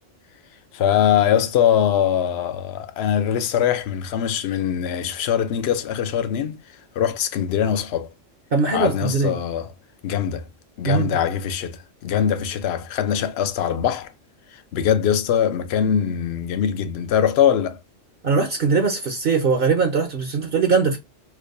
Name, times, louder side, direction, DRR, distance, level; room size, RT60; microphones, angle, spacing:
voice 1, 0.7-6.6 6.9-8.1 8.7-9.7 10.0-10.5 10.8-14.1 14.5-17.8, left 9 dB, 65° left, 0.8 m, -22 dB
voice 2, 8.5-9.3 10.8-11.1 18.2-21.0, right 4 dB, 55° right, 0.8 m, -20 dB
4.5 x 2.2 x 2.3 m
omnidirectional pair, 1.3 m